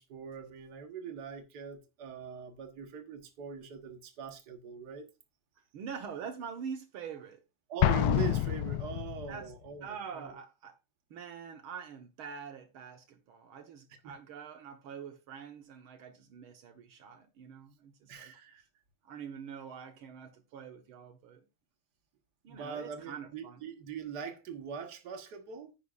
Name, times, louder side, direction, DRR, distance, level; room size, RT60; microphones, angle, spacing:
voice 1, 0.0-5.1 7.7-10.4 14.0-14.1 18.1-18.6 22.5-25.7, right 7 dB, 55° right, 1.8 m, -42 dB
voice 2, 5.7-7.4 9.3-9.5 9.8-10.8 11.1-18.3 19.0-21.4 22.4-23.6, right 7 dB, 80° right, 2.0 m, -45 dB
Explosion, 7.8-9.4, left 13 dB, 90° left, 1.5 m, -28 dB
9.9 x 9.6 x 2.5 m
omnidirectional pair, 2.3 m